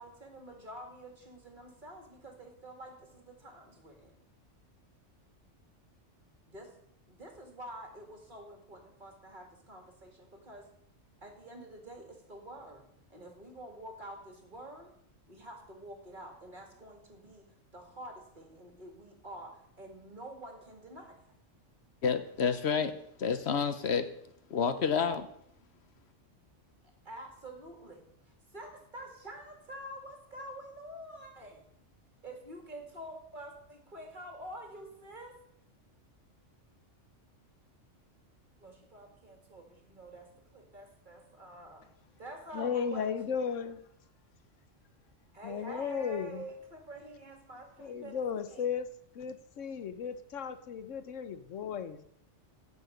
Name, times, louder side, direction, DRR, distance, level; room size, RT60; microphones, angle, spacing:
voice 1, 0.0-4.2 6.5-6.7 7.1-10.7 11.2-12.8 13.1-14.9 15.3-17.5 17.7-21.3 26.8-31.7 32.2-35.4 38.6-41.9 42.2-43.1 45.3-48.7, right 1 dB, 40° right, 3 dB, 2.4 m, -48 dB
voice 2, 22.0-22.9 23.2-24.1 24.5-25.3, left 6 dB, 65° left, 10 dB, 1.0 m, -29 dB
voice 3, 42.5-43.8 45.4-46.4 47.8-48.9 49.1-52.0, left 7 dB, 85° left, 11 dB, 1.2 m, -35 dB
15.5 x 6.9 x 5.1 m, 0.72 s
omnidirectional pair, 1.3 m